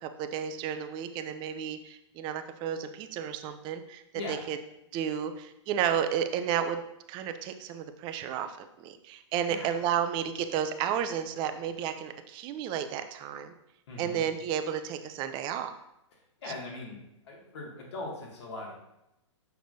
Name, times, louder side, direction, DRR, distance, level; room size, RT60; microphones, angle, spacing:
voice 1, 0.0-4.0 4.3-4.6 4.9-6.8 7.1-13.5 14.0-15.7, right 9 dB, 30° right, 9 dB, 0.5 m, -32 dB
voice 2, 13.9-14.2 16.4-18.7, left 2 dB, 60° left, -2 dB, 2.2 m, -40 dB
6.8 x 5.9 x 2.7 m, 0.86 s
figure-of-eight pair, 115°, 16 cm